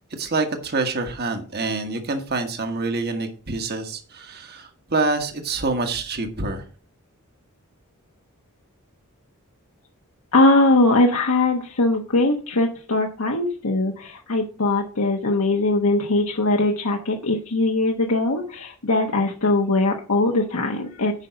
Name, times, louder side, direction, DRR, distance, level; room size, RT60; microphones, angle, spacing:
voice 1, 0.2-6.6, right 3 dB, 45° right, 6 dB, 1.4 m, -26 dB
voice 2, 10.3-21.1, left 2 dB, 80° left, 1 dB, 1.2 m, -21 dB
9.6 x 5.4 x 5.7 m, 0.39 s
head